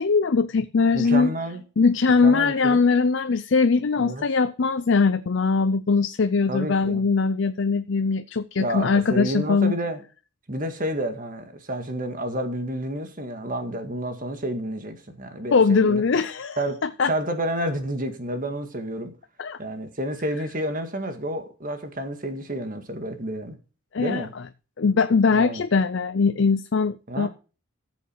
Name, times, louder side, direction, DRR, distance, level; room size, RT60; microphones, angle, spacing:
voice 1, 0.0-1.3 1.8-9.7 15.5-17.1 19.4-19.6 23.9-24.3 24.8-27.3, left 4 dB, 60° left, 0.5 m, -21 dB
voice 2, 0.9-1.6 2.2-2.8 4.0-4.2 6.5-7.0 8.6-10.0 10.5-16.0 16.6-19.1 19.6-23.6 24.0-24.3 25.3-25.6 27.1-27.3, right 1 dB, 40° right, 1.9 m, -30 dB
14.0 x 7.1 x 4.6 m
head